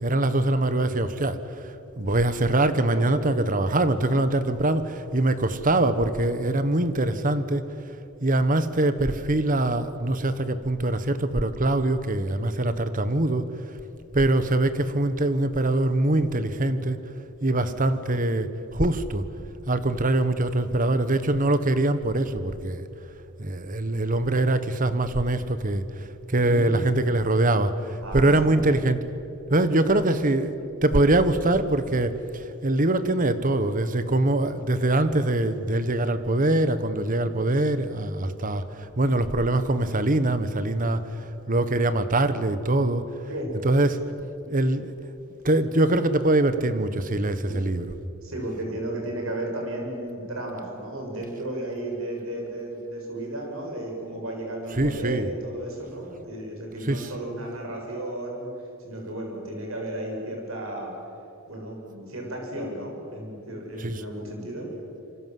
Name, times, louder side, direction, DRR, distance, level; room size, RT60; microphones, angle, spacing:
voice 1, 0.0-7.6 8.2-13.5 14.1-17.0 17.4-19.2 19.7-22.8 23.4-29.0 29.5-30.5 30.8-43.1 43.6-44.0 44.5-44.9 45.4-47.9 54.8-55.3 56.9-57.1 63.8-64.0, right 2 dB, 40° right, 12 dB, 1.4 m, -23 dB
voice 2, 26.4-26.8 28.0-28.6 29.7-30.0 43.3-43.5 47.5-47.6 48.2-58.5 58.8-61.0 61.5-64.7, right 1 dB, 70° right, 1 dB, 7.1 m, -34 dB
27.5 x 25.0 x 7.8 m, 2.7 s
head